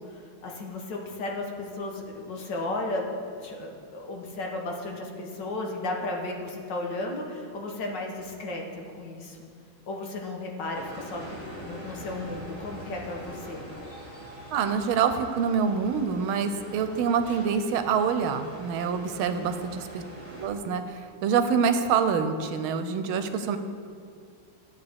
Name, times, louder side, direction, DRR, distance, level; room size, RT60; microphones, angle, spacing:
voice 1, 0.0-3.1 3.3-9.5 9.9-13.6 19.2-19.5, left 2 dB, 60° left, 0 dB, 1.6 m, -34 dB
sound 1, 10.7-20.5, right 1 dB, 15° right, 2.3 m, -43 dB
voice 2, 14.5-20.0 20.4-23.6, right 6 dB, 90° right, 8 dB, 1.5 m, -26 dB
13.0 x 8.2 x 3.4 m, 2.3 s
omnidirectional pair, 2.3 m